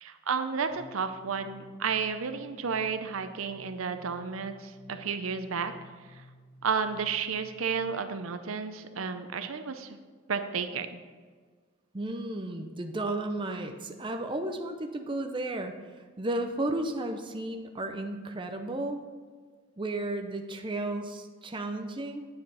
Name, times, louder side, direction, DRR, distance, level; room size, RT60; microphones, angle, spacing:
voice 1, 0.0-5.7 6.6-10.0 10.3-11.0, right 6 dB, 85° right, 9 dB, 0.6 m, -32 dB
sound 1, 0.7-8.3, left 1 dB, 10° left, 2.3 m, -55 dB
voice 2, 11.9-19.0 19.8-22.3, right 2 dB, 25° right, 5 dB, 0.6 m, -33 dB
8.8 x 7.9 x 4.1 m, 1.5 s
head